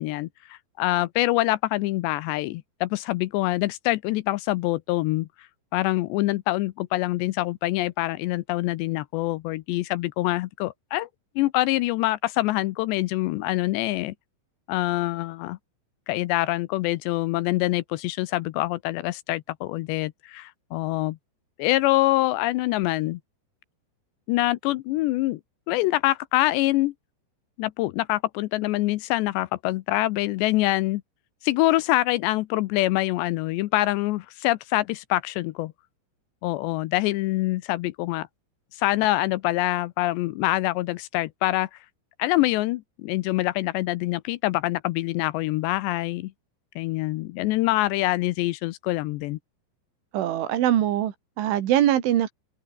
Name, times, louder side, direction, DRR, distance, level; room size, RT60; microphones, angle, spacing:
voice 1, 0.0-5.3 5.7-11.1 11.4-14.1 14.7-15.6 16.1-21.2 21.6-23.2 24.3-25.4 25.7-26.9 27.6-31.0 31.4-35.7 36.4-38.3 38.7-41.7 42.2-46.3 46.8-49.4, left 18 dB, 80° left, 2.7 m, -25 dB
voice 2, 50.1-52.3, right 12 dB, 85° right, 4.5 m, -23 dB
omnidirectional pair, 5.4 m